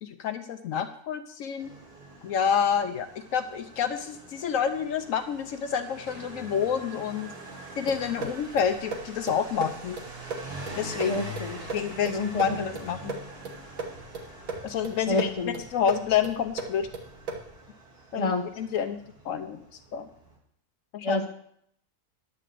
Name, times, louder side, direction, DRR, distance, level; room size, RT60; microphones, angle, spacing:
voice 1, 0.0-1.7 2.2-7.3 7.8-10.0 10.8-11.2 11.7-13.2 14.6-15.3 15.7-16.9 18.1-19.0 19.2-19.6 19.9-20.1 20.9-21.2, left 7 dB, 75° left, 9 dB, 1.0 m, -28 dB
Motorcycle, 1.6-20.4, right 1 dB, 45° right, 2.2 m, -44 dB
sound 1, 7.9-17.6, right 4 dB, 80° right, 1.8 m, -39 dB
voice 2, 11.0-11.7 12.0-12.5 13.0-13.2 15.1-15.5 18.1-18.4 21.0-21.3, left 2 dB, 25° left, 4 dB, 1.1 m, -29 dB
11.0 x 5.0 x 7.7 m, 0.69 s
omnidirectional pair, 1.4 m